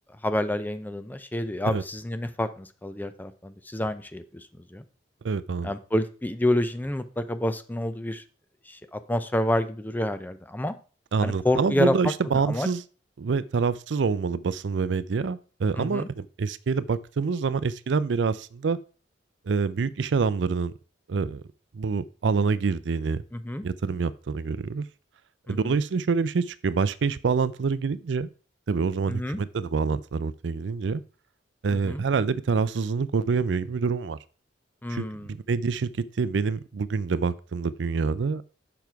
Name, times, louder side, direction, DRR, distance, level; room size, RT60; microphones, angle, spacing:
voice 1, 0.2-4.4 4.7-4.8 5.6-8.2 8.7-10.7 11.2-11.9 12.3-12.7 15.8-16.1 23.3-23.6 25.5-25.8 29.1-29.4 31.7-32.0 34.8-35.3, left 1 dB, 10° left, 0.5 m, -28 dB
voice 2, 5.2-5.7 11.1-12.8 13.2-18.8 19.5-20.7 21.1-21.4 21.7-23.2 23.6-24.8 25.5-28.3 28.7-31.0 31.6-34.2 34.9-35.0 35.5-38.5, right 5 dB, 65° right, 0.4 m, -26 dB
7.0 x 5.9 x 4.6 m
head